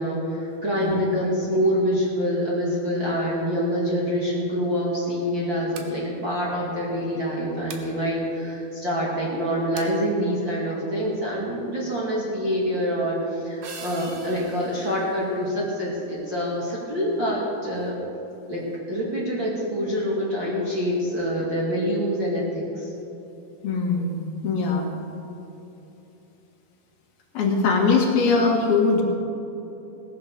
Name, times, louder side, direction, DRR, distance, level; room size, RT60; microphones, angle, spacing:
voice 1, 0.0-17.9 18.5-18.6 18.9-22.9, equal, 35° right, -5 dB, 2.2 m, -26 dB
sound 1, 5.7-6.0 7.7-8.0 9.8-10.0, right 7 dB, 75° right, 2.9 m, -41 dB
sound 2, 13.6-16.3, right 4 dB, 55° right, 2.7 m, -44 dB
voice 2, 23.6-24.8 27.3-29.0, left 4 dB, 70° left, 0 dB, 3.6 m, -21 dB
18.0 x 10.5 x 6.7 m, 3.0 s
omnidirectional pair, 4.6 m